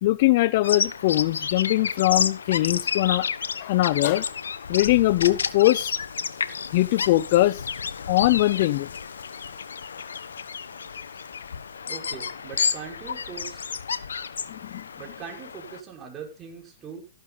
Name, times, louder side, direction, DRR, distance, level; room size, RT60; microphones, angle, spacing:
voice 1, 0.0-3.3 3.6-4.3 4.7-5.9 6.7-7.6 8.1-8.9 14.7-14.8, left 17 dB, 50° left, 0.6 m, -21 dB
Bird vocalization bird call bird song, 0.6-15.8, left 6 dB, 80° left, 1.2 m, -31 dB
voice 2, 11.9-13.6 15.0-17.0, right 7 dB, 25° right, 5.7 m, -41 dB
14.0 x 11.5 x 4.0 m
hypercardioid pair, 130°, 0 cm